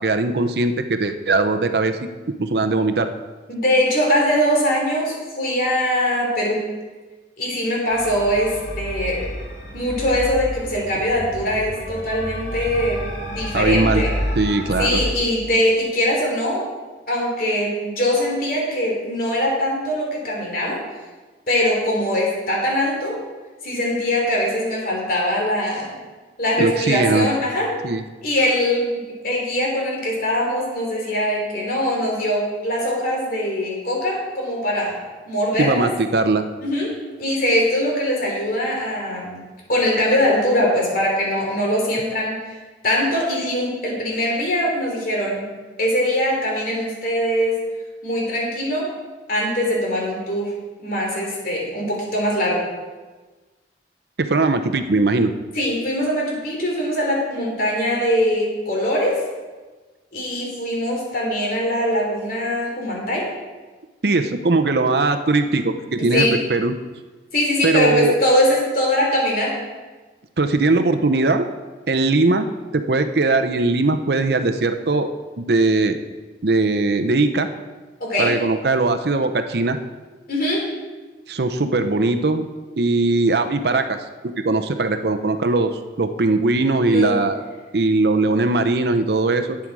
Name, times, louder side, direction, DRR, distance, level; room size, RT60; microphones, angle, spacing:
voice 1, 0.0-2.0 2.4-3.1 13.5-14.0 14.4-15.0 26.6-27.3 27.8-28.0 35.6-36.4 54.2-55.3 64.0-66.7 67.6-68.2 70.4-71.5 71.9-75.1 75.4-76.0 76.4-77.5 78.2-79.8 81.3-82.4 82.8-84.0 84.4-87.4 87.7-89.6, right 3 dB, 60° right, 8 dB, 0.7 m, -20 dB
voice 2, 3.5-6.7 7.4-9.3 9.7-14.1 14.8-16.6 17.1-20.8 21.5-23.2 23.6-25.9 26.4-27.8 28.2-28.9 29.2-35.0 35.3-35.9 36.6-39.4 39.7-42.6 42.8-45.5 45.8-47.6 48.0-48.9 49.3-50.6 50.8-52.7 55.5-59.2 60.1-63.3 66.0-66.4 67.3-69.6 78.0-78.4 80.3-80.7 86.8-87.1, left 1 dB, 50° left, -2 dB, 3.3 m, -22 dB
sound 1, 7.9-15.1, equal, 85° left, 2.0 m, -29 dB
11.5 x 8.5 x 4.7 m, 1.3 s
head